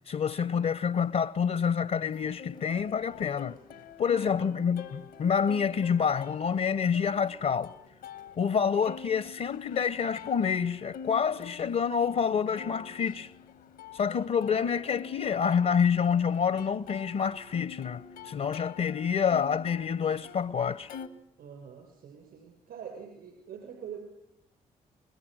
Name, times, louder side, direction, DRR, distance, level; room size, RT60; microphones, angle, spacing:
voice 1, 0.1-3.6 4.0-7.7 8.4-13.3 13.9-20.9, left 7 dB, 55° left, 0.8 m, -27 dB
Plucked string instrument, 2.1-21.1, left 7 dB, 85° left, 1.6 m, -47 dB
voice 2, 21.4-24.0, right 7 dB, 75° right, 6.1 m, -45 dB
29.0 x 21.0 x 6.3 m
hypercardioid pair, 45°, 16 cm